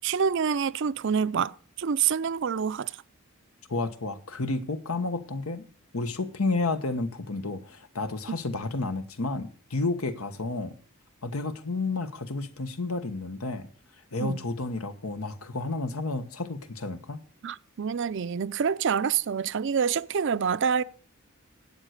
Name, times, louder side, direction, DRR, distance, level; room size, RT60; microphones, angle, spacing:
voice 1, 0.0-2.9 8.3-8.4 14.2-14.4 17.4-20.8, right 7 dB, 60° right, 0.5 m, -27 dB
voice 2, 3.7-5.7 5.9-10.7 11.2-13.7 14.1-17.2, left 3 dB, 90° left, 1.2 m, -31 dB
12.5 x 8.1 x 6.5 m
head